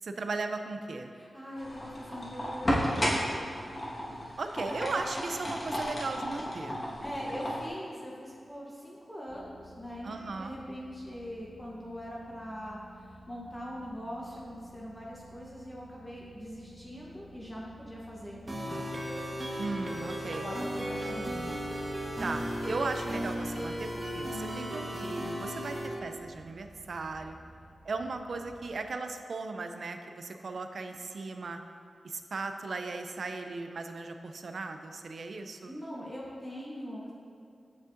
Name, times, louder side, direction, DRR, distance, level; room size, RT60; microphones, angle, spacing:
voice 1, 0.0-1.1 4.4-6.8 10.0-10.6 19.6-20.4 22.2-27.4 27.8-31.6 32.0-35.7, right 3 dB, 65° right, 6 dB, 0.4 m, -37 dB
voice 2, 1.1-3.3 7.0-19.0 20.4-21.5 35.7-37.1, equal, 15° left, -5 dB, 0.9 m, -42 dB
sound 1, 1.6-7.7, equal, 30° left, 1.4 m, -33 dB
sound 2, 9.3-28.9, right 1 dB, 50° right, 1.4 m, -52 dB
sound 3, 18.5-25.9, equal, 35° right, 1.1 m, -35 dB
8.1 x 6.2 x 2.5 m, 2.6 s
wide cardioid pair, 85°, 0 cm